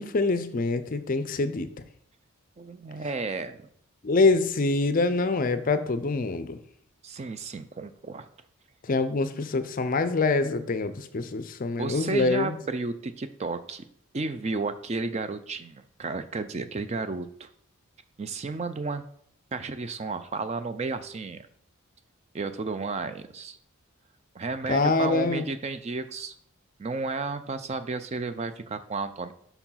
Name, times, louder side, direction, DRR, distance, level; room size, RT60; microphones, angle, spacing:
voice 1, 0.0-1.7 4.0-6.6 8.9-12.5 24.7-25.4, left 3 dB, 40° left, 12 dB, 0.5 m, -25 dB
voice 2, 2.6-3.6 7.0-8.3 11.8-13.8 14.1-17.5 18.2-19.0 19.5-21.5 22.3-23.6 24.3-26.4 26.8-29.3, right 3 dB, 30° right, 11 dB, 0.4 m, -32 dB
5.5 x 4.7 x 5.6 m, 0.64 s
head